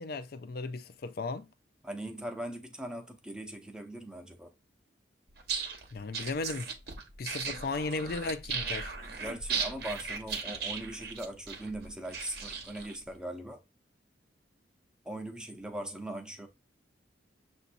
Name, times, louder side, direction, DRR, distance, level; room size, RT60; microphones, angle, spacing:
voice 1, 0.0-1.5 5.9-6.7 7.2-8.9, left 3 dB, 55° left, 0.4 m, -35 dB
voice 2, 1.8-4.5 9.2-13.6 15.0-16.5, right 1 dB, 5° right, 0.6 m, -40 dB
sound 1, 5.4-13.0, right 5 dB, 55° right, 1.0 m, -37 dB
7.0 x 2.7 x 2.6 m
head